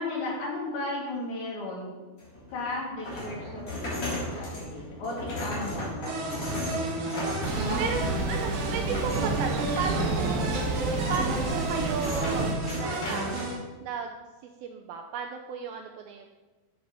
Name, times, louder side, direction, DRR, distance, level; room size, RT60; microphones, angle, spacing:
voice 1, 0.0-1.9 2.5-6.3 7.0-7.2 7.6-7.8 8.1-8.3, left 2 dB, 80° left, -5 dB, 5.0 m, -35 dB
sound 1, 2.2-13.5, left 1 dB, 35° left, 4.0 m, -36 dB
sound 2, 6.1-13.6, right 2 dB, 50° right, 2.0 m, -33 dB
voice 2, 7.0-7.5 7.8-8.0 8.3-10.8 11.1-14.1 14.6-16.4, right 6 dB, 80° right, 4 dB, 2.2 m, -35 dB
Thunder, 7.4-12.5, right 2 dB, 65° right, 2.3 m, -30 dB
13.0 x 7.4 x 4.1 m, 1.2 s
omnidirectional pair, 5.0 m